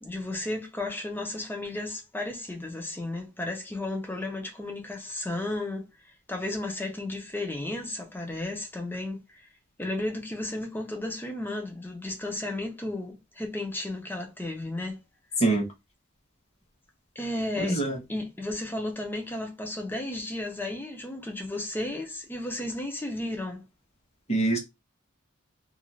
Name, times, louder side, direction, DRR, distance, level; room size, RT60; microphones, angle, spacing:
voice 1, 0.0-5.9 6.3-9.5 9.8-15.0 17.2-17.8 18.1-23.6, left 2 dB, 10° left, 0.5 m, -33 dB
voice 2, 17.6-18.0 24.3-24.6, right 2 dB, 30° left, 1.0 m, -24 dB
2.5 x 2.3 x 3.0 m
head